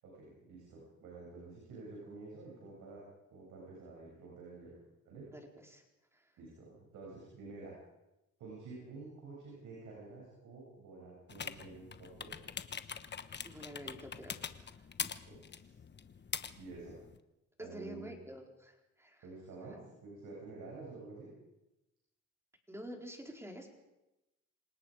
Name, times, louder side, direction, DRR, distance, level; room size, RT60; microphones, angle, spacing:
voice 1, 0.0-3.0 3.3-4.8 5.0-5.3 6.4-7.7 8.4-12.4 15.3-15.7 16.6-16.9 17.6-18.1 19.2-21.3, right 3 dB, 85° right, -4 dB, 7.7 m, -49 dB
voice 2, 5.3-5.8 6.1-6.3 13.4-15.1 17.6-19.2 22.7-23.7, equal, 10° right, 1 dB, 4.5 m, -49 dB
sound 1, 11.3-17.2, left 6 dB, 35° left, 1.1 m, -44 dB
27.5 x 18.5 x 5.1 m, 0.96 s
cardioid pair, 90°, 30 cm